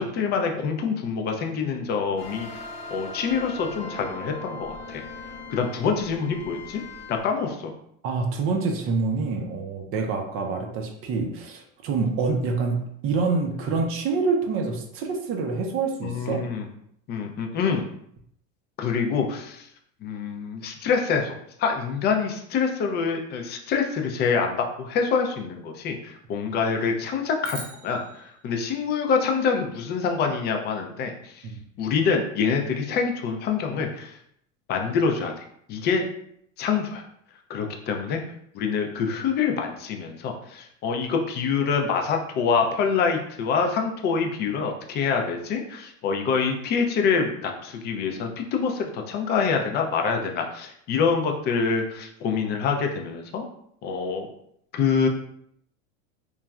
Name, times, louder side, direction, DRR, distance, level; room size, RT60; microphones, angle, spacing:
voice 1, 0.0-5.0 5.5-6.8 7.1-7.7 16.0-16.7 17.1-17.8 18.8-19.7 20.0-31.5 31.8-34.2 34.7-35.3 35.7-36.0 36.6-37.0 37.5-38.2 38.5-53.4 53.8-54.3 54.7-55.1, left 5 dB, 30° left, 3 dB, 0.3 m, -26 dB
sound 1, 2.2-7.2, left 3 dB, 70° left, 0.9 m, -39 dB
voice 2, 8.0-12.8 13.0-16.4 31.4-31.6, right 4 dB, 35° right, 3 dB, 0.4 m, -26 dB
sound 2, 27.4-29.9, right 4 dB, 80° right, 0.9 m, -44 dB
3.0 x 2.3 x 2.3 m, 0.71 s
supercardioid pair, 110°, 39 cm